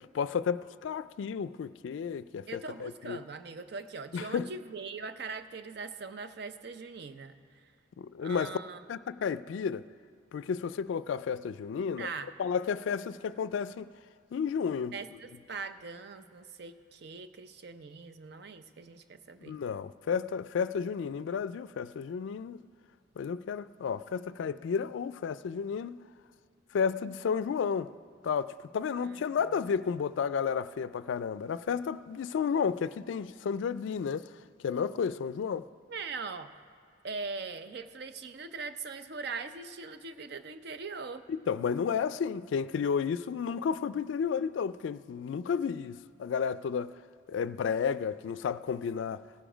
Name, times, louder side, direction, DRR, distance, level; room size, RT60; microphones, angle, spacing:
voice 1, 0.1-3.2 4.1-4.5 8.0-8.6 8.9-9.8 10.3-12.1 12.4-13.9 14.3-15.0 19.4-22.6 23.2-26.0 26.7-27.9 28.2-34.2 34.6-35.6 41.5-46.9 47.3-49.2, left 6 dB, 75° left, 0.3 m, -32 dB
voice 2, 2.5-7.3 8.2-8.8 12.0-12.3 14.9-19.6 29.0-29.2 35.9-36.5 37.0-41.3, right 4 dB, 55° right, 0.5 m, -41 dB
17.5 x 7.0 x 5.0 m
head